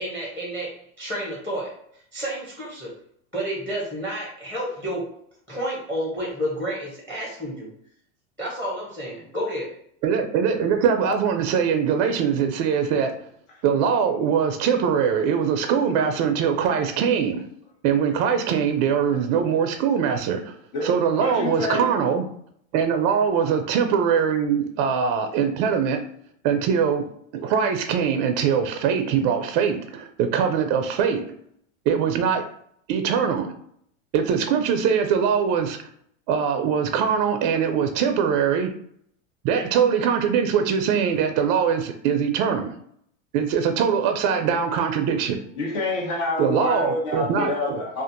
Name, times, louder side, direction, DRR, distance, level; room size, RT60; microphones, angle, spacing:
voice 1, 0.0-1.8 2.1-2.9 3.3-5.1 5.5-7.7 8.4-9.8, equal, 5° left, -3 dB, 0.7 m, -30 dB
voice 2, 10.0-13.2 13.6-17.5 17.8-20.5 20.8-22.3 22.7-26.0 26.4-27.1 27.3-31.3 31.9-32.5 32.9-33.5 34.1-35.8 36.3-38.7 39.4-42.7 43.3-45.4 46.4-47.8, right 7 dB, 45° right, 6 dB, 0.4 m, -22 dB
voice 3, 20.7-21.9 45.6-48.0, left 2 dB, 60° left, -2 dB, 1.2 m, -27 dB
2.5 x 2.5 x 2.5 m, 0.66 s
hypercardioid pair, 110°, 39 cm